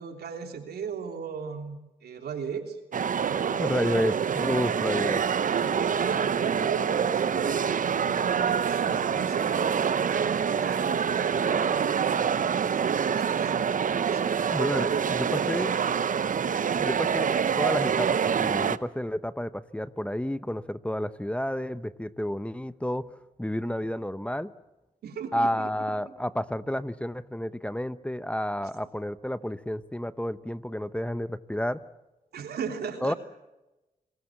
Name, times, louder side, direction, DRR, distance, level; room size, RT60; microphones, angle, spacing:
voice 1, 0.0-2.8 3.2-3.6 5.5-13.6 14.0-16.0 25.0-25.7 26.0-26.1 32.3-33.2, right 6 dB, 80° right, 5 dB, 3.3 m, -36 dB
sound 1, 2.9-18.8, right 7 dB, 55° right, 0.8 m, -26 dB
voice 2, 3.6-5.2 8.9-9.0 14.5-15.7 16.8-18.1 18.4-23.1 23.4-24.5 25.3-31.8 33.0-33.1, equal, 5° left, 14 dB, 0.9 m, -30 dB
28.5 x 20.0 x 7.4 m, 1.0 s
cardioid pair, 55°, 16 cm